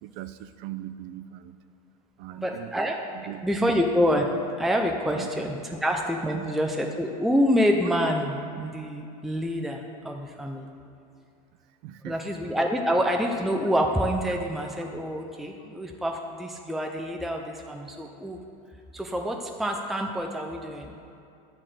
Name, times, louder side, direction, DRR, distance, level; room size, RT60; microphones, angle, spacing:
voice 1, 0.0-1.6 2.2-2.7 3.1-3.8 5.1-5.3 6.3-6.5 11.8-12.2 14.3-14.4, right 14 dB, 60° right, 12 dB, 0.5 m, -39 dB
voice 2, 2.4-3.0 3.4-4.3 4.6-10.7 12.1-18.4 18.9-20.9, equal, ahead, 2 dB, 0.6 m, -27 dB
10.5 x 4.4 x 7.5 m, 2.6 s
supercardioid pair, 120°, 19 cm